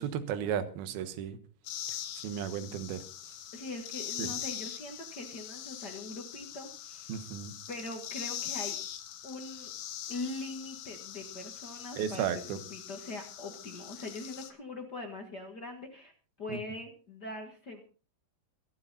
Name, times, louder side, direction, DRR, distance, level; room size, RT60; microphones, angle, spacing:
voice 1, 0.0-1.4 2.2-3.0 4.2-4.3 7.1-7.5 12.0-12.6, right 9 dB, 70° right, 11 dB, 3.0 m, -34 dB
sound 1, 1.7-14.5, left 10 dB, 80° left, 3.5 m, -42 dB
voice 2, 3.5-7.2 7.7-8.8 9.2-9.7 10.1-16.1 16.4-17.8, left 2 dB, 65° left, 3 dB, 1.0 m, -42 dB
25.0 x 8.7 x 4.2 m, 0.36 s
omnidirectional pair, 4.9 m